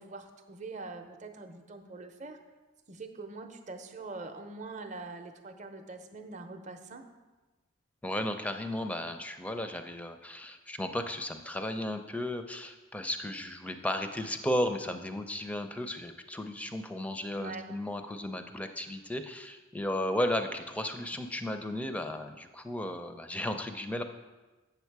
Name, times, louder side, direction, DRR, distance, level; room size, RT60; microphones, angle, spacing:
voice 1, 0.0-2.4 2.9-7.0 17.3-17.7, right 3 dB, 35° right, 6 dB, 0.6 m, -43 dB
voice 2, 8.0-24.0, left 1 dB, 5° left, 7 dB, 0.4 m, -34 dB
8.1 x 6.9 x 4.6 m, 1.2 s
head